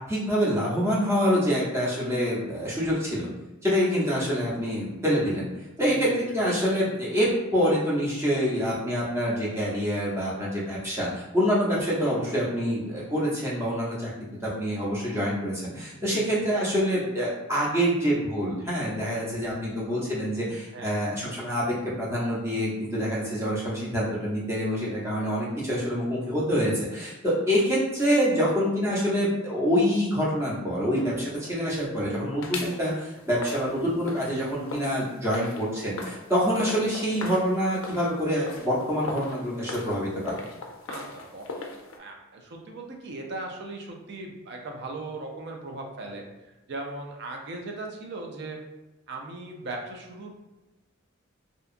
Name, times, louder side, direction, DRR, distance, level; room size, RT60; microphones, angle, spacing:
voice 1, 0.1-3.3 3.6-5.5 5.8-14.1 14.4-40.4, equal, 15° right, -6 dB, 0.6 m, -26 dB
voice 2, 5.8-6.2 6.5-6.7 15.9-16.4 20.7-21.2 40.9-46.2 46.7-48.6 49.1-50.3, right 2 dB, 50° right, 1 dB, 0.4 m, -38 dB
sound 1, 31.0-32.1 32.4-42.0, left 3 dB, 65° left, 0.4 m, -40 dB
2.7 x 2.3 x 2.4 m, 1.0 s
head